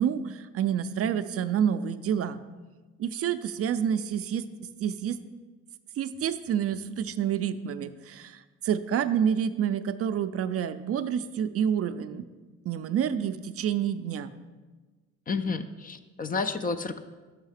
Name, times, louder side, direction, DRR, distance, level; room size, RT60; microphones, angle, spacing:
voice 1, 0.0-2.4 3.0-4.4 4.8-5.2 6.0-12.3 12.7-14.3, right 8 dB, 50° right, 11 dB, 0.4 m, -28 dB
voice 2, 15.3-17.0, left 4 dB, 30° left, 10 dB, 0.4 m, -30 dB
6.4 x 5.5 x 4.9 m, 1.3 s
cardioid pair, 90°, 30 cm